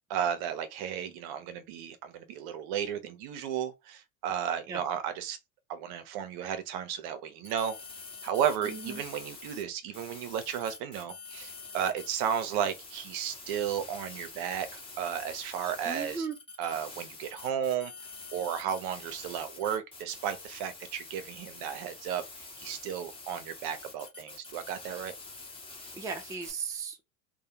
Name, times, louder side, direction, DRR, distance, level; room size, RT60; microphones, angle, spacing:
voice 1, 0.1-5.4 5.7-7.8 8.2-16.3 16.6-17.9 18.3-25.1, right 9 dB, 55° right, 0.7 m, -34 dB
sound 1, 7.4-9.6 9.9-26.5, left 3 dB, 10° left, 1.0 m, -46 dB
voice 2, 8.6-9.0 15.8-16.4 25.9-27.2, right 5 dB, 10° right, 0.4 m, -37 dB
2.2 x 2.1 x 2.8 m
hypercardioid pair, 90°, 44 cm